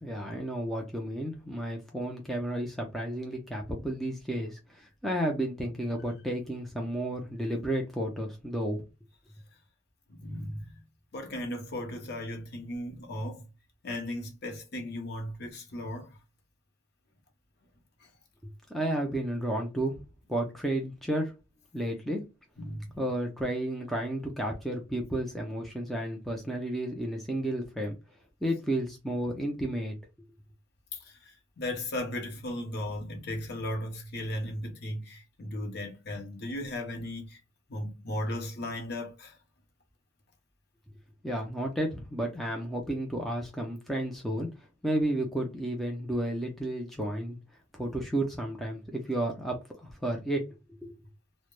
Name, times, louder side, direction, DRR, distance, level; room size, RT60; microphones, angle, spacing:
voice 1, 0.0-8.8 18.7-20.0 20.3-21.3 21.7-22.3 23.0-28.0 28.4-30.0 41.2-47.4 47.7-50.5 50.8-51.0, right 1 dB, ahead, 0.4 m, -32 dB
voice 2, 10.1-10.7 11.1-13.4 13.8-16.2 18.0-18.1 22.6-22.9 30.9-37.4 37.7-39.4, left 1 dB, 50° left, 0.6 m, -36 dB
2.2 x 2.0 x 3.0 m
head